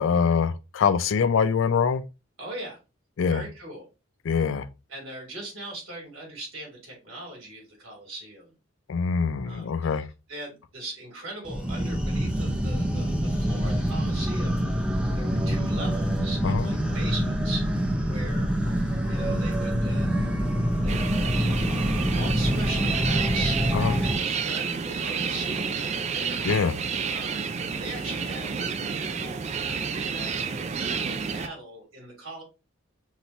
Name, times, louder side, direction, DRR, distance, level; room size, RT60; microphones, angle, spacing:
voice 1, 0.0-2.0 3.2-3.4 4.2-4.7 8.9-10.0 16.4-16.7 23.7-23.9 26.4-26.7, left 6 dB, 65° left, 0.4 m, -24 dB
voice 2, 2.4-2.8 3.3-3.9 4.9-8.5 9.4-14.9 15.1-17.7 18.1-18.5 19.1-20.1 20.8-21.6 22.0-26.5 27.1-27.4 27.8-32.4, right 2 dB, 75° right, 2.8 m, -40 dB
sound 1, 11.4-24.2, equal, 5° right, 0.7 m, -26 dB
sound 2, 20.9-31.5, right 6 dB, 30° right, 0.3 m, -30 dB
6.0 x 2.8 x 2.7 m
head